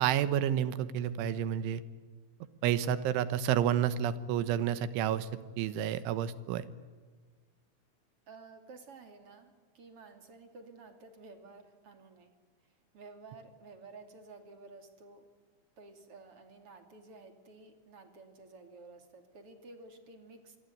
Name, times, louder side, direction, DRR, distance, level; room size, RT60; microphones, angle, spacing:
voice 1, 0.0-1.8 2.6-5.3 5.6-6.6, right 10 dB, 90° right, 14 dB, 3.6 m, -30 dB
voice 2, 8.3-12.4 12.9-15.2 15.8-20.6, right 3 dB, 35° right, 7 dB, 3.0 m, -53 dB
26.5 x 22.0 x 9.5 m, 1.5 s
omnidirectional pair, 5.4 m